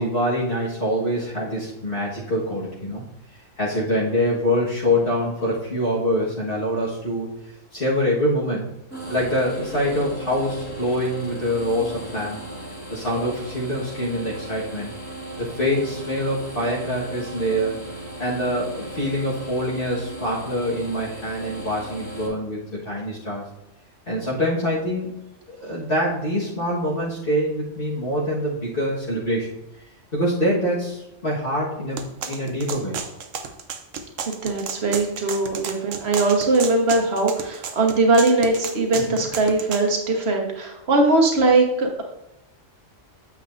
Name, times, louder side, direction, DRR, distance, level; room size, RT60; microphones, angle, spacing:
voice 1, 0.0-3.0 3.6-7.3 7.7-8.7 9.1-12.4 12.9-14.9 15.4-17.7 18.2-23.4 24.1-25.1 25.6-29.5 30.1-33.0 39.1-39.2, equal, 45° left, -7 dB, 1.8 m, -25 dB
sound 1, 8.9-22.3, right 1 dB, 10° left, 2.1 m, -36 dB
sound 2, 32.0-39.9, right 6 dB, 80° right, 1.1 m, -32 dB
voice 2, 34.4-42.0, right 2 dB, 55° right, 2 dB, 1.5 m, -20 dB
9.1 x 7.5 x 2.6 m, 0.87 s
omnidirectional pair, 1.3 m